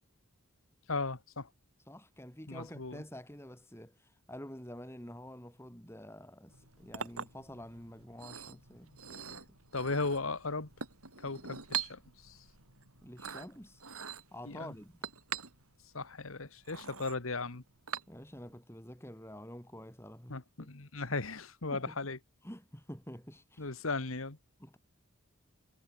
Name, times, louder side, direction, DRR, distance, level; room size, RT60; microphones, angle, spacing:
voice 1, 0.9-1.5 2.5-3.0 9.7-10.7 11.2-12.4 14.5-14.7 15.9-17.6 20.3-22.2 23.6-24.4, left 3 dB, 70° left, 1.7 m, -36 dB
voice 2, 1.9-9.4 13.0-13.8 14.3-15.1 18.1-20.7 21.7-22.0 22.4-23.7 24.6-24.8, left 1 dB, 10° left, 5.0 m, -48 dB
Chink clink, 6.5-18.5, right 7 dB, 90° right, 8.0 m, -44 dB
head